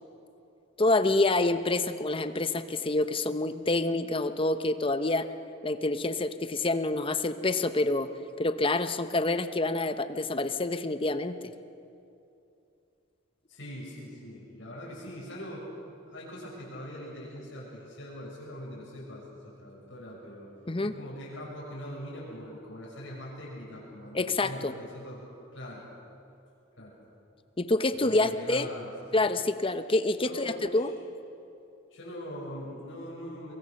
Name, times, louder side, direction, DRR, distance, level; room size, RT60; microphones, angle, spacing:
voice 1, 0.8-5.2 5.6-8.1 8.4-11.3 20.7-20.9 24.1-24.7 27.6-28.7 29.1-30.9, left 2 dB, 25° left, 10 dB, 0.9 m, -27 dB
voice 2, 13.5-15.7 16.1-20.5 20.8-25.2 25.5-25.9 26.8-26.9 27.9-28.9 30.2-30.9 31.9-33.5, equal, 65° left, -5 dB, 6.3 m, -42 dB
24.0 x 22.5 x 6.6 m, 2.7 s
head